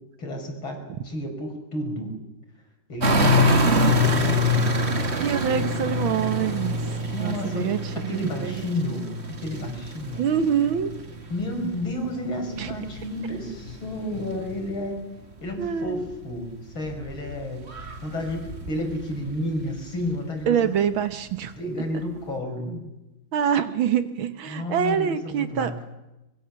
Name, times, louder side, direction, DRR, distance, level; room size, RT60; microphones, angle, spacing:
voice 1, 0.2-2.1 2.9-4.9 7.1-10.3 11.3-15.0 15.4-17.6 18.0-20.6 21.6-22.9 24.5-25.7, left 1 dB, 70° left, 3 dB, 5.8 m, -31 dB
sound 1, 3.0-15.0 15.3-20.2 20.7-20.8, left 1 dB, 30° right, 2.1 m, -26 dB
voice 2, 3.4-3.9 5.2-6.8 7.2-8.5 10.2-10.9 12.6-12.7 15.6-16.0 20.5-21.5 23.3-25.7, right 8 dB, 70° right, 11 dB, 1.9 m, -25 dB
24.0 x 22.0 x 7.1 m, 0.97 s
omnidirectional pair, 2.3 m